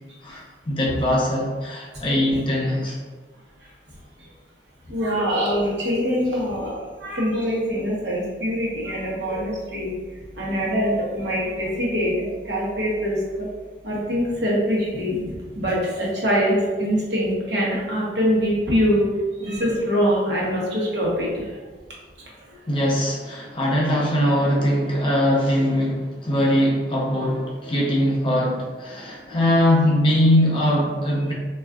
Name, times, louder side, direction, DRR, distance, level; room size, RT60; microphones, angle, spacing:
voice 1, 0.2-3.0 22.7-31.3, equal, 30° left, -3 dB, 0.5 m, -21 dB
voice 2, 4.9-9.9 10.3-13.5 13.8-19.1 19.3-21.6 22.4-22.6, equal, 70° right, -5 dB, 0.9 m, -24 dB
3.5 x 2.4 x 2.3 m, 1.4 s
head